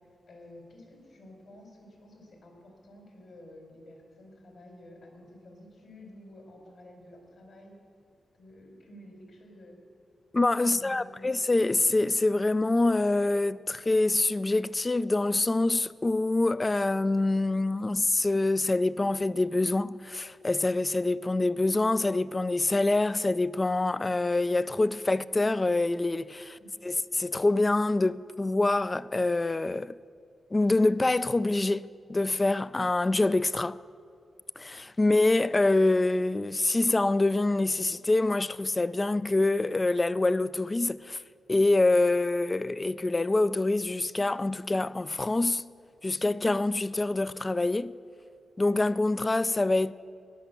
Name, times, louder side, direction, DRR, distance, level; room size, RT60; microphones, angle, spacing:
voice 1, 0.3-7.8 8.3-9.8 10.6-11.3 26.6-26.8, left 1 dB, 70° left, 4.2 m, -51 dB
voice 2, 10.3-29.9 30.5-33.8 34.6-41.2 41.5-45.7 46.0-47.9 48.6-49.9, left 2 dB, 25° left, 0.4 m, -25 dB
17.5 x 10.5 x 6.9 m
cardioid pair, 75°, 0 cm